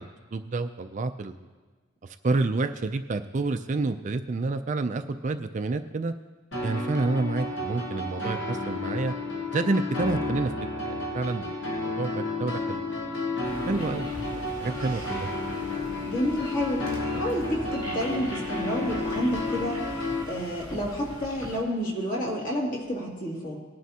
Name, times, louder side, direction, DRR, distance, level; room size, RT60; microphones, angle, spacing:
voice 1, 0.0-1.4 2.0-6.1 6.6-9.1 9.5-10.5 10.9-12.8 13.7-14.1 14.4-15.3, right 3 dB, 35° right, 9 dB, 0.3 m, -29 dB
sound 1, 6.5-20.2, left 2 dB, 60° left, 1.3 m, -32 dB
sound 2, 13.4-21.6, equal, 25° left, 3.3 m, -41 dB
voice 2, 16.0-19.8 20.3-23.6, equal, 40° left, -3 dB, 2.4 m, -30 dB
19.0 x 9.4 x 2.8 m, 1.4 s
head